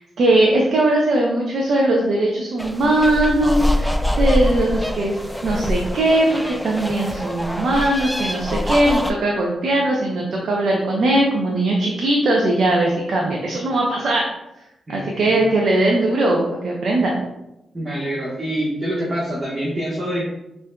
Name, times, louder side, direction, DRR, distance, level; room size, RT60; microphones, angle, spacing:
voice 1, 0.0-14.3 14.9-17.1, right 1 dB, 70° right, -1 dB, 0.6 m, -19 dB
sound 1, 2.6-9.1, left 1 dB, 5° left, 0.4 m, -24 dB
voice 2, 14.9-15.3 17.7-20.3, right 1 dB, 35° right, -7 dB, 1.1 m, -26 dB
5.5 x 2.6 x 2.2 m, 0.91 s
supercardioid pair, 45°, 0 cm